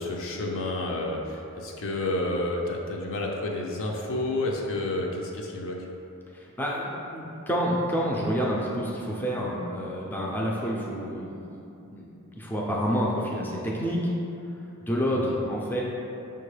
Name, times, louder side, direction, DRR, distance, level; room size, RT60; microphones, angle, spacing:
voice 1, 0.0-5.8 15.1-15.4, left 2 dB, 65° left, 0 dB, 0.5 m, -30 dB
voice 2, 6.3-11.6 11.9-14.1 14.9-15.8, equal, 10° left, -4 dB, 0.4 m, -28 dB
5.6 x 2.2 x 3.2 m, 2.8 s
head